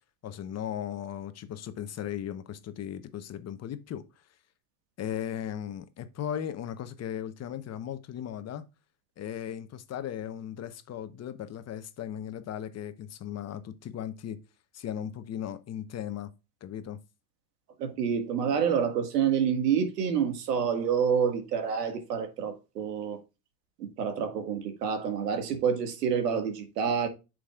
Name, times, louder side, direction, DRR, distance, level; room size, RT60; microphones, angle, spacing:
voice 1, 0.2-4.0 5.0-8.6 9.2-14.4 14.7-16.3 16.6-17.0, left 10 dB, 35° left, 1.0 m, -37 dB
voice 2, 17.8-23.2 23.8-27.1, right 7 dB, 85° right, 1.9 m, -28 dB
8.3 x 6.3 x 2.4 m
hypercardioid pair, 100°, 46 cm